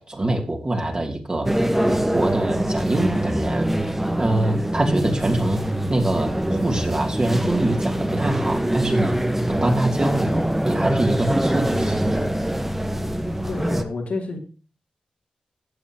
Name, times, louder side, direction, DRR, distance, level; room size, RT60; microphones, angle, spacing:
voice 1, 0.1-1.5 1.9-3.7 4.2-5.6 5.9-9.2 9.5-12.2, right 1 dB, 35° right, 2 dB, 2.8 m, -24 dB
sound 1, 1.5-13.8, right 1 dB, 10° right, 1.3 m, -24 dB
voice 2, 13.5-14.4, left 3 dB, 70° left, 0 dB, 3.0 m, -29 dB
14.5 x 8.1 x 3.0 m, 0.35 s
cardioid pair, 50°, 3 cm